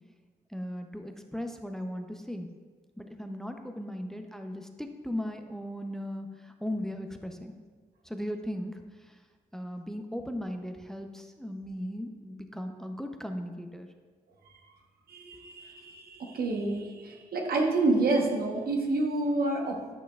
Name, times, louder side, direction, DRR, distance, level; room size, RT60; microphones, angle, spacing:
voice 1, 0.5-2.5 3.0-7.5 8.0-9.2 9.5-13.9, equal, 5° left, 5 dB, 0.7 m, -37 dB
voice 2, 15.1-19.8, right 2 dB, 70° right, 1 dB, 1.1 m, -28 dB
9.3 x 5.9 x 2.4 m, 1.5 s
supercardioid pair, 45°, 16 cm